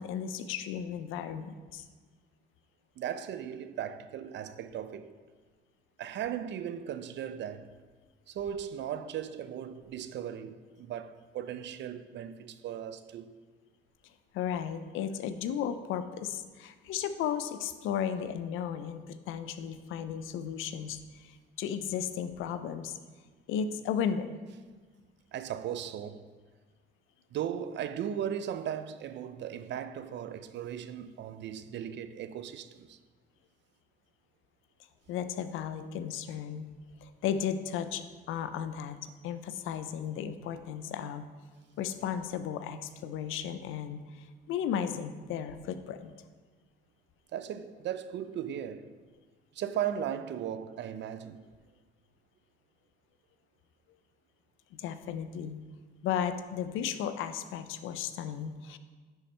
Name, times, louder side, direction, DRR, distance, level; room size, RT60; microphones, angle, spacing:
voice 1, 0.0-1.9 14.3-23.0 23.5-24.4 35.1-36.7 37.0-41.3 41.8-46.1 54.7-55.6 56.0-58.8, left 8 dB, 90° left, 0.5 m, -35 dB
voice 2, 3.0-5.2 6.0-7.7 8.3-13.3 25.3-26.3 27.3-33.0 47.3-48.9 49.5-51.4, right 9 dB, 65° right, 0.4 m, -37 dB
10.0 x 4.3 x 3.2 m
cardioid pair, 90°, 20 cm